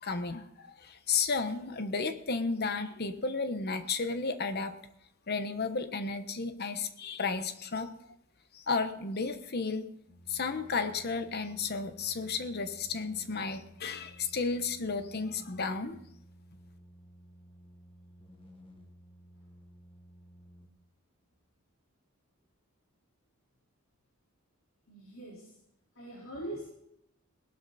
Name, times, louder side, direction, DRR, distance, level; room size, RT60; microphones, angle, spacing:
voice 1, 0.0-4.8 5.3-7.9 8.5-9.9 10.3-16.0, left 4 dB, 50° left, 9 dB, 1.1 m, -33 dB
sound 1, 10.1-20.7, equal, 25° left, 1.8 m, -55 dB
voice 2, 24.9-25.6 25.9-26.7, right 1 dB, 70° left, -6 dB, 4.3 m, -42 dB
18.0 x 12.0 x 4.2 m, 0.77 s
head